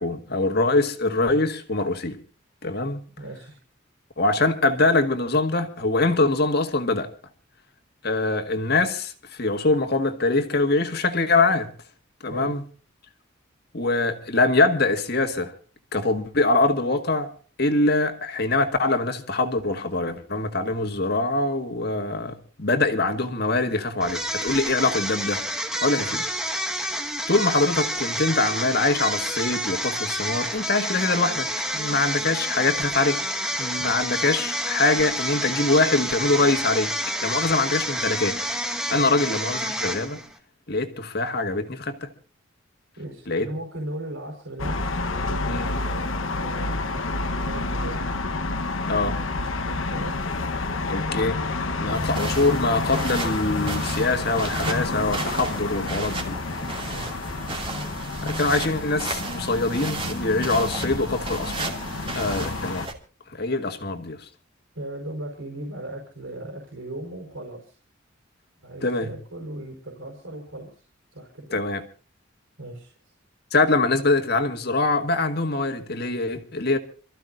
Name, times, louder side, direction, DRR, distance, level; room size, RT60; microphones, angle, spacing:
voice 1, 0.0-2.2 2.6-3.0 4.2-7.1 8.0-11.7 12.2-12.6 13.7-15.5 15.9-17.3 17.6-25.4 25.8-26.3 27.3-33.2 33.6-36.9 37.2-38.4 38.9-40.2 40.7-42.1 43.3-43.5 45.5-45.7 48.9-49.2 50.9-51.5 51.8-56.4 58.2-61.7 62.1-62.9 63.3-64.3 68.8-69.2 71.5-71.8 73.5-76.8, left 2 dB, 50° left, 1.8 m, -23 dB
voice 2, 3.2-3.6 12.3-12.5 26.0-26.2 33.8-33.9 38.9-39.1 43.0-44.8 45.1-48.1 49.6-50.2 51.8-52.1 56.8-57.3 62.4-62.6 64.7-67.8 68.6-70.8 71.1-71.6 72.6-72.9, right 1 dB, 85° right, 5.2 m, -37 dB
sound 1, 24.0-40.3, equal, 5° right, 1.5 m, -29 dB
sound 2, 44.6-62.9, left 3 dB, 80° left, 1.2 m, -29 dB
sound 3, 51.9-62.9, right 3 dB, 25° right, 2.6 m, -34 dB
28.0 x 14.5 x 2.6 m
head